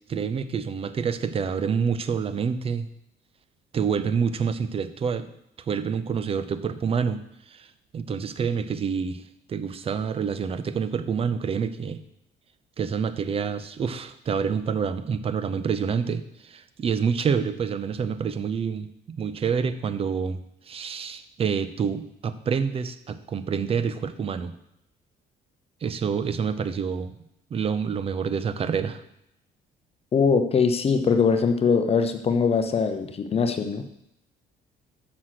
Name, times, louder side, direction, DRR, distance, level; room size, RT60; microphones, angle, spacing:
voice 1, 0.1-2.9 3.7-5.3 5.7-7.7 7.9-9.2 9.5-12.0 12.8-18.9 19.2-20.4 20.7-24.5 25.8-27.2 27.5-29.0, right 6 dB, 35° right, 12 dB, 0.6 m, -27 dB
voice 2, 30.1-34.0, left 5 dB, 35° left, 8 dB, 0.7 m, -22 dB
6.3 x 6.2 x 5.8 m, 0.78 s
cardioid pair, 110°, 17 cm